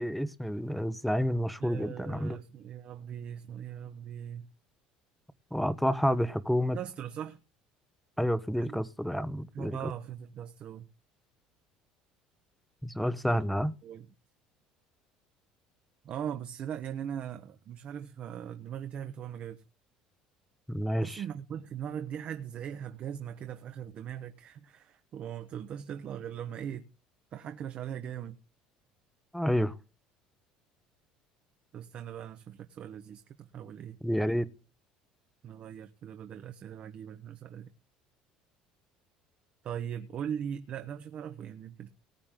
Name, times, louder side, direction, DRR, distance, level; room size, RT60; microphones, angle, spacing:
voice 1, 0.0-2.4 5.5-6.8 8.2-9.9 12.8-13.7 20.7-21.2 29.3-29.7 34.0-34.5, equal, ahead, 1.1 m, -29 dB
voice 2, 1.6-4.5 6.7-7.4 8.6-8.8 9.5-10.9 13.8-14.1 16.0-19.6 21.0-26.9 27.3-28.4 31.7-34.0 35.4-37.7 39.6-41.9, right 9 dB, 50° right, 1.3 m, -40 dB
19.0 x 8.7 x 3.8 m
supercardioid pair, 105°, 3 cm